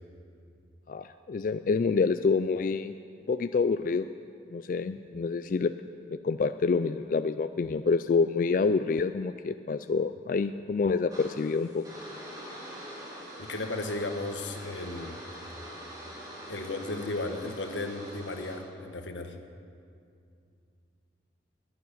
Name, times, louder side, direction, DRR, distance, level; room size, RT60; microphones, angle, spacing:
voice 1, 0.9-2.9 3.3-4.1 4.5-5.7 6.1-11.8, left 4 dB, 45° left, 10 dB, 0.3 m, -27 dB
sound 1, 11.1-18.6, equal, 20° right, 3.6 m, -44 dB
voice 2, 13.4-15.2 16.5-19.3, left 2 dB, 90° left, 6 dB, 1.3 m, -35 dB
12.0 x 10.5 x 9.8 m, 2.5 s
head